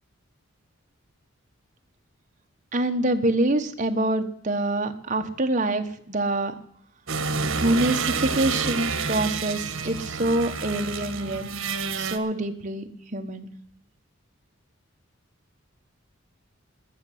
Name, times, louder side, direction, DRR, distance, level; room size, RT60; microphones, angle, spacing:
voice 1, 2.7-6.5 7.6-11.4 12.0-13.5, right 1 dB, 35° right, 5 dB, 1.3 m, -25 dB
sound 1, 7.1-12.2, right 4 dB, 75° right, 1.4 m, -29 dB
14.0 x 6.8 x 10.0 m, 0.68 s
head